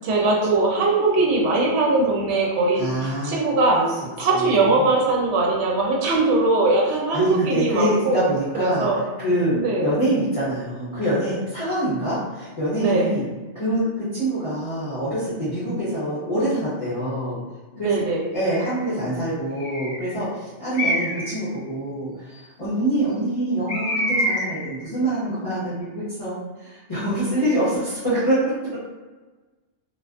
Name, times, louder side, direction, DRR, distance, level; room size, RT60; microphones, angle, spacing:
voice 1, 0.0-3.8 4.2-8.2 8.6-9.0 9.5-9.9 12.8-13.1 17.8-18.2, right 2 dB, 70° right, -1 dB, 0.8 m, -20 dB
voice 2, 2.8-3.4 3.7-4.9 7.1-13.2 13.5-17.4 17.8-18.0 18.3-28.8, right 1 dB, 35° left, -13 dB, 0.7 m, -25 dB
Bird, 18.3-18.8 19.6-20.1 20.7-21.4 23.7-24.7, equal, 85° left, 0.3 m, -26 dB
2.3 x 2.3 x 2.3 m, 1.2 s
omnidirectional pair, 1.2 m